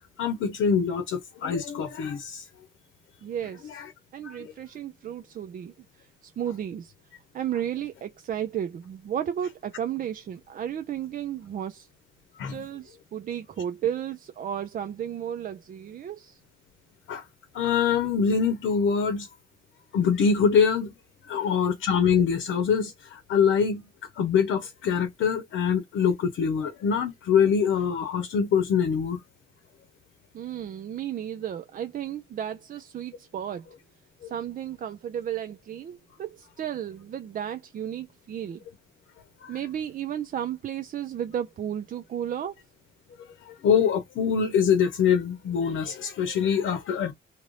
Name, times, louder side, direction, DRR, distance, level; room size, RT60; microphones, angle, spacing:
voice 1, 0.2-2.5 3.6-3.9 4.2-4.5 12.4-12.6 17.1-17.2 17.5-19.3 19.9-20.9 21.3-23.9 24.2-29.2 34.2-34.3 39.4-39.6 43.5-47.1, left 7 dB, 75° left, 0.8 m, -24 dB
voice 2, 3.2-3.8 4.1-6.9 7.3-11.9 12.5-16.4 30.3-33.7 34.2-38.6 39.5-42.5, right 9 dB, 45° right, 0.4 m, -33 dB
2.9 x 2.5 x 3.2 m
cardioid pair, 90°, 20 cm